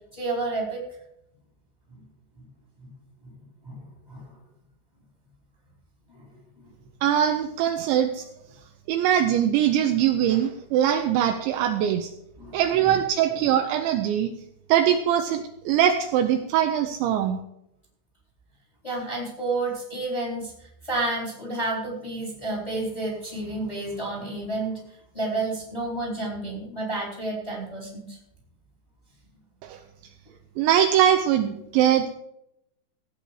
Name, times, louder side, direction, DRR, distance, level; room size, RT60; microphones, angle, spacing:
voice 1, 0.1-0.8 2.8-2.9 3.2-3.3 3.6-4.2 12.4-13.0 13.3-13.4 18.8-20.5 20.8-24.8 25.1-28.2, right 2 dB, 10° left, -2 dB, 3.2 m, -30 dB
voice 2, 7.0-8.2 8.9-12.1 12.5-14.3 14.7-17.4 29.6-29.8 30.6-32.2, right 10 dB, 80° right, 6 dB, 2.8 m, -22 dB
16.0 x 9.3 x 4.9 m, 0.80 s
omnidirectional pair, 5.7 m